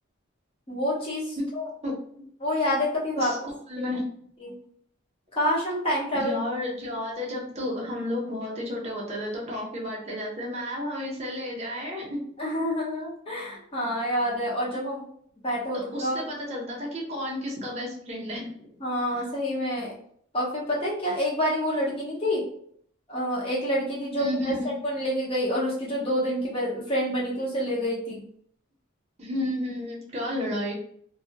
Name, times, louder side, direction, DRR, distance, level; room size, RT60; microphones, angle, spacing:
voice 1, 0.7-1.7 2.4-3.3 4.4-4.5 5.3-6.3 12.4-15.0 15.4-16.2 18.8-19.9 20.3-22.4 23.1-28.2, equal, 30° left, -6 dB, 0.9 m, -27 dB
voice 2, 1.8-2.3 3.2-4.0 6.1-12.2 14.7-14.8 15.7-18.5 19.1-19.3 24.2-24.7 29.2-30.7, left 1 dB, 35° right, -2 dB, 0.7 m, -32 dB
2.2 x 2.1 x 2.8 m, 0.64 s
head